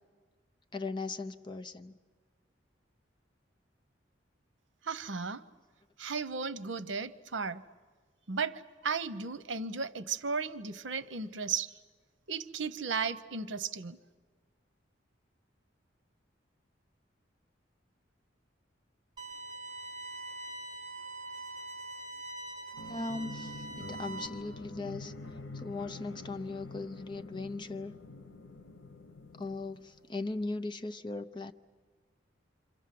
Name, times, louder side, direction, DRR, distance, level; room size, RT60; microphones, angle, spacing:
voice 1, 0.7-1.9 22.8-27.9 29.4-31.5, left 3 dB, 25° left, 7 dB, 0.7 m, -39 dB
voice 2, 4.8-5.4 6.0-7.6 8.3-11.7 12.3-14.0, right 5 dB, 80° right, 13 dB, 0.9 m, -35 dB
sound 1, 19.2-24.3, right 2 dB, 25° right, 3.8 m, -43 dB
sound 2, 22.7-30.3, left 2 dB, 90° left, 1.2 m, -46 dB
27.0 x 26.5 x 7.7 m, 1.5 s
head